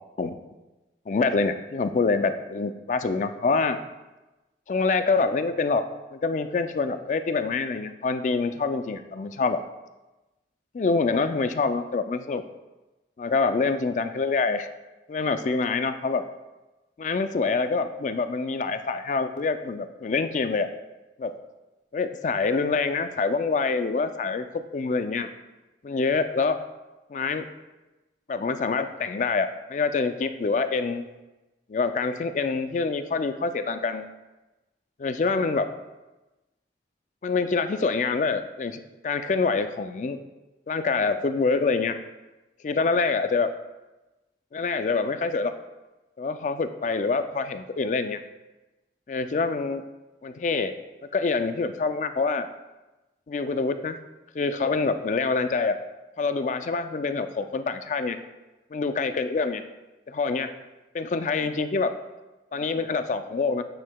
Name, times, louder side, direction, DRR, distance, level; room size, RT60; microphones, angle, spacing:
voice 1, 1.1-3.8 4.7-5.8 6.1-9.6 10.7-12.4 13.2-14.7 15.1-16.2 17.0-20.7 21.2-21.4 21.9-25.3 25.8-26.6 27.1-27.4 28.3-31.0 31.7-34.1 35.0-35.7 37.2-40.2 40.7-42.0 42.6-43.5 44.5-45.5 46.2-48.2 49.1-49.8 50.2-50.7 51.1-52.5 53.3-54.0 54.3-55.8 56.2-58.2 58.7-59.6 60.1-60.5 60.9-61.9 62.5-63.6, left 4 dB, 40° left, 9 dB, 0.3 m, -26 dB
9.0 x 5.6 x 2.3 m, 1.1 s
head